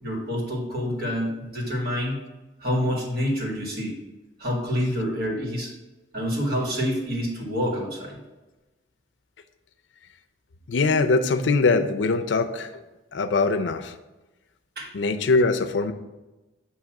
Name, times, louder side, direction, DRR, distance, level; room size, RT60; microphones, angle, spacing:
voice 1, 0.0-2.2 2.6-4.0 4.4-5.7 6.1-8.2 14.8-14.9, equal, 60° right, -2 dB, 1.8 m, -27 dB
voice 2, 10.7-12.7 13.1-13.9 14.9-15.9, left 3 dB, 85° left, 9 dB, 0.5 m, -22 dB
7.3 x 2.9 x 5.8 m, 1.1 s
head